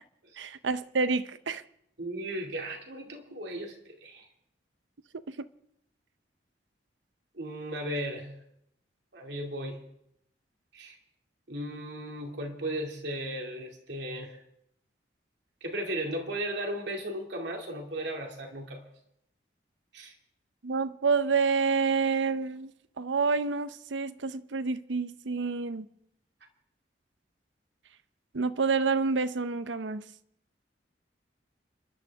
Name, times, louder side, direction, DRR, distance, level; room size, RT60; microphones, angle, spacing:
voice 1, 0.4-1.6 5.3-5.5 20.6-22.7 23.0-25.9 28.3-30.1, right 4 dB, 90° right, 0.7 m, -28 dB
voice 2, 2.0-4.3 7.3-8.3 9.1-9.8 10.7-11.0 11.5-14.4 15.6-18.8 19.9-20.1, right 1 dB, 75° right, 2.5 m, -36 dB
30.0 x 11.5 x 3.5 m
head